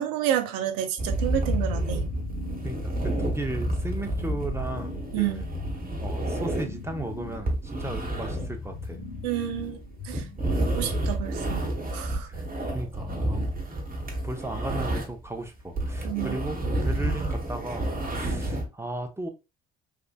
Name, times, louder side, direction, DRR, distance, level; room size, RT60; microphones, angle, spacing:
voice 1, 0.0-2.1 5.1-5.4 9.2-9.8 10.0-10.3 10.6-11.7 11.9-12.3 16.0-16.4, right 11 dB, 70° right, 0.6 m, -29 dB
sound 1, 1.0-15.3 15.6-18.7, right 1 dB, 25° right, 1.1 m, -30 dB
sound 2, 1.3-10.6, left 5 dB, 65° left, 0.9 m, -39 dB
voice 2, 2.6-5.5 6.0-9.0 12.1-12.5 12.7-13.4 14.0-19.3, right 2 dB, 5° right, 0.7 m, -36 dB
3.4 x 2.4 x 2.2 m
hypercardioid pair, 45°, 36 cm